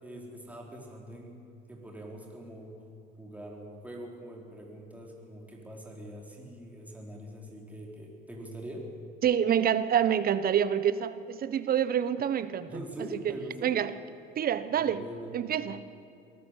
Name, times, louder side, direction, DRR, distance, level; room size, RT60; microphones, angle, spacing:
voice 1, 0.0-1.4 1.7-2.7 3.2-8.9 12.7-13.7 14.7-15.4, right 1 dB, 5° right, -1 dB, 4.3 m, -43 dB
voice 2, 9.2-12.7 13.2-13.3 13.6-13.9 14.4-15.0 15.3-15.8, right 9 dB, 45° right, 14 dB, 1.2 m, -27 dB
23.0 x 14.0 x 8.4 m, 2.6 s
supercardioid pair, 90°, 20 cm